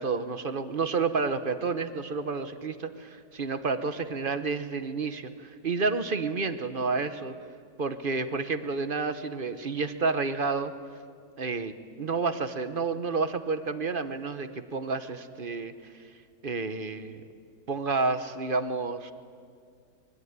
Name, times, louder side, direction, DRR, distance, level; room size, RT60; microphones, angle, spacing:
voice 1, 0.0-7.3 7.8-10.7 11.4-16.0 16.4-17.2 17.7-19.1, right 4 dB, 35° right, 11 dB, 0.9 m, -30 dB
24.0 x 22.0 x 9.5 m, 2.2 s
omnidirectional pair, 2.0 m